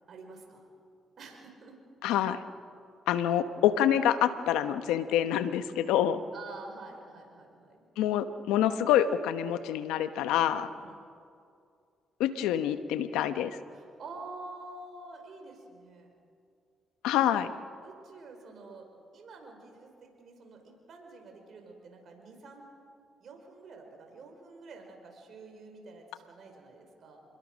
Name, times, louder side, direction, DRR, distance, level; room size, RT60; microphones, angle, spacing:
voice 1, 0.1-0.7 1.2-1.8 6.3-7.8 10.7-11.0 13.7-16.1 17.1-17.3 17.8-18.9 19.1-22.6 23.2-27.2, right 3 dB, 60° right, 3 dB, 5.1 m, -48 dB
voice 2, 2.0-2.4 3.1-6.2 8.0-10.7 12.2-13.5 17.0-17.5, left 10 dB, 90° left, 11 dB, 0.9 m, -26 dB
26.5 x 21.5 x 6.3 m, 2.4 s
supercardioid pair, 65°, 0 cm